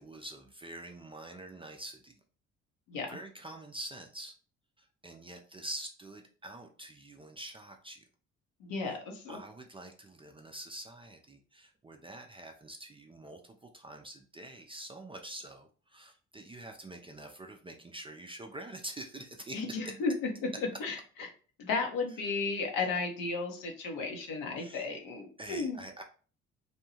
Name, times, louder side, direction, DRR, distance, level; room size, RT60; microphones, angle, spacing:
voice 1, 0.0-2.2 3.1-4.3 4.8-8.0 9.3-19.9 22.3-22.4 24.6-24.9 25.4-26.0, right 1 dB, 15° right, 3 dB, 0.4 m, -46 dB
voice 2, 8.6-9.4 19.5-21.3 21.6-25.8, left 4 dB, 65° left, 3 dB, 0.9 m, -34 dB
2.7 x 2.2 x 2.9 m, 0.40 s
hypercardioid pair, 55°, 36 cm